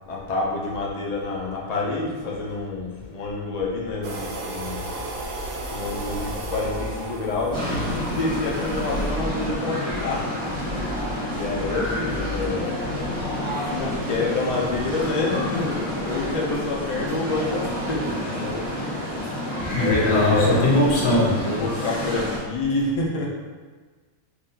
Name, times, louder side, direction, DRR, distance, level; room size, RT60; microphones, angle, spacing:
voice 1, 0.1-4.9 5.7-10.2 11.3-13.1 13.7-19.1 19.7-20.6 21.5-23.3, left 3 dB, 85° left, -3 dB, 0.3 m, -28 dB
sound 1, 4.0-9.1, right 2 dB, 70° right, 0.9 m, -34 dB
sound 2, 7.5-22.4, left 1 dB, 25° right, 1.0 m, -29 dB
voice 2, 19.6-21.6, left 2 dB, 55° left, -5 dB, 1.0 m, -20 dB
3.7 x 2.6 x 2.7 m, 1.4 s
omnidirectional pair, 1.5 m